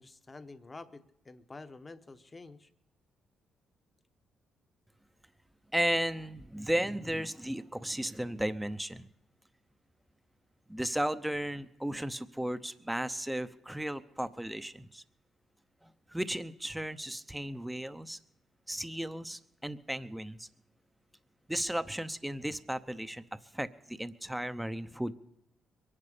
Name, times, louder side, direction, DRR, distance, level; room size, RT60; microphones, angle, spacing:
voice 1, 0.0-2.7, left 3 dB, 25° left, 9 dB, 1.0 m, -49 dB
voice 2, 5.7-9.1 10.7-15.0 15.8-18.2 18.7-20.5 21.5-25.1, right 1 dB, 5° right, 12 dB, 0.7 m, -35 dB
23.0 x 11.0 x 5.0 m, 0.80 s
cardioid pair, 90°, 0 cm